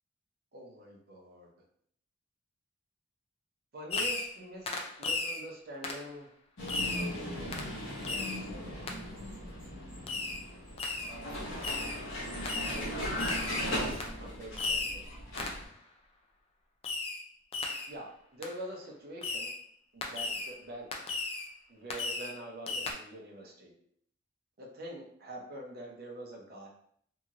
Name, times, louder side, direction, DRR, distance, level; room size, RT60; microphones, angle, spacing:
voice 1, 0.5-1.5 3.7-4.7 5.0-6.3 6.9-8.9 11.0-11.5 12.7-13.2 13.5-15.1 17.9-19.5 19.9-20.9 21.7-23.7 24.6-26.7, right 1 dB, 50° right, 0 dB, 0.7 m, -45 dB
Fireworks, 3.9-4.4 4.7-5.4 5.8-6.1 6.7-7.1 7.5-7.7 8.0-8.4 8.9-9.0 10.1-10.4 10.8-11.1 11.6-12.0 12.5-12.8 13.2-13.6 14.0-14.1 14.6-15.0 15.4-15.6 16.8-17.2 17.5-17.9 18.4-18.5 19.2-19.6 20.0-20.5 20.9-21.5 21.9-22.4 22.7-22.9, left 3 dB, 30° left, 0.4 m, -35 dB
Vehicle, 6.6-15.6, equal, 65° left, 1.1 m, -38 dB
2.8 x 2.8 x 2.5 m, 0.65 s
head